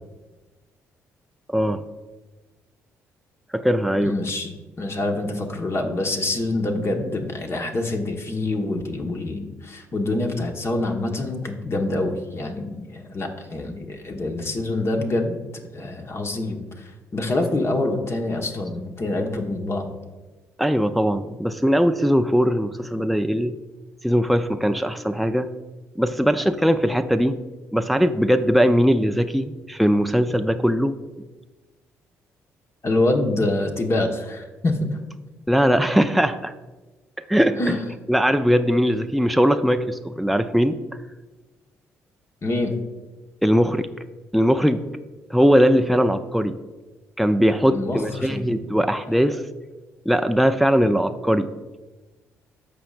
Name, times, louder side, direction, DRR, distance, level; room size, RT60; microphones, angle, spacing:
voice 1, 1.5-1.8 3.5-4.1 20.6-23.6 24.0-25.5 26.0-27.4 27.7-31.0 35.5-36.5 37.3-37.7 38.1-40.8 43.4-43.9 44.3-44.8 45.3-46.5 47.2-49.4 50.1-51.5, equal, ahead, 8 dB, 0.5 m, -20 dB
voice 2, 4.0-19.9 32.8-35.0 37.6-37.8 42.4-42.7 47.6-48.6, left 2 dB, 40° left, 2 dB, 1.3 m, -26 dB
14.5 x 5.1 x 2.5 m, 1.2 s
hypercardioid pair, 50°, 7 cm